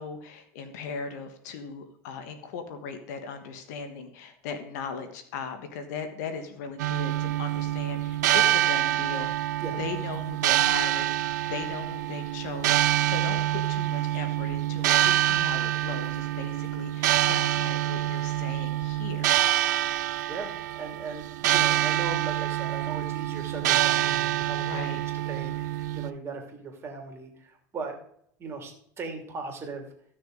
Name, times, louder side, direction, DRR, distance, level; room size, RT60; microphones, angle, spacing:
voice 1, 0.0-9.3 9.8-19.4 24.6-25.0, left 5 dB, 75° left, 8 dB, 1.6 m, -38 dB
sound 1, 6.8-26.1, right 13 dB, 85° right, 0.5 m, -26 dB
voice 2, 20.0-24.9 25.3-28.0 28.4-29.8, right 4 dB, 30° right, 2 dB, 2.8 m, -38 dB
15.0 x 6.4 x 4.0 m, 0.67 s
supercardioid pair, 115°, 9 cm